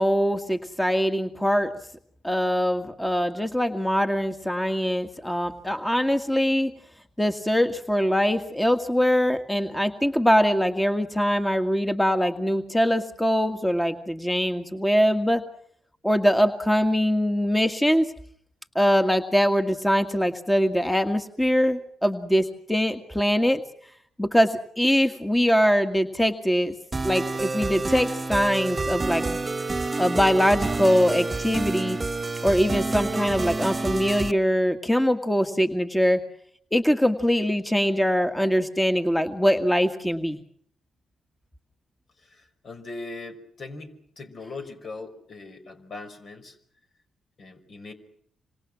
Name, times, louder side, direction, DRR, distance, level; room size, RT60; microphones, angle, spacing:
voice 1, 0.0-1.7 2.2-6.7 7.2-15.4 16.0-18.1 18.8-23.6 24.2-26.7 27.0-29.4 30.0-32.0 32.4-36.2 36.7-40.4, equal, 10° left, 6 dB, 2.0 m, -22 dB
sound 1, 26.9-34.3, right 3 dB, 30° right, 1.4 m, -28 dB
voice 2, 42.2-46.6 47.4-47.9, left 3 dB, 55° left, 6 dB, 5.4 m, -40 dB
27.0 x 26.0 x 6.2 m, 0.67 s
hypercardioid pair, 45°, 0 cm